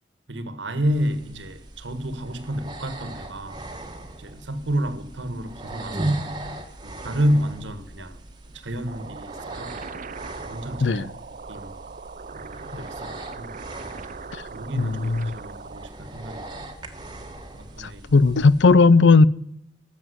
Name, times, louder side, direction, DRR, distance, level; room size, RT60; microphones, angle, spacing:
voice 1, 0.3-3.6 4.2-6.4 6.8-8.2 8.6-9.8 10.4-11.0 11.5-11.8 12.3-13.6 14.5-17.0 17.5-18.1, equal, 80° right, 1.7 m, -30 dB
sound 1, 0.9-18.7, right 1 dB, 25° right, 1.6 m, -39 dB
sound 2, 8.9-15.9, right 5 dB, 45° right, 0.7 m, -40 dB
voice 2, 14.8-15.2 17.8-19.3, left 4 dB, 75° left, 0.6 m, -16 dB
13.5 x 7.4 x 9.6 m
head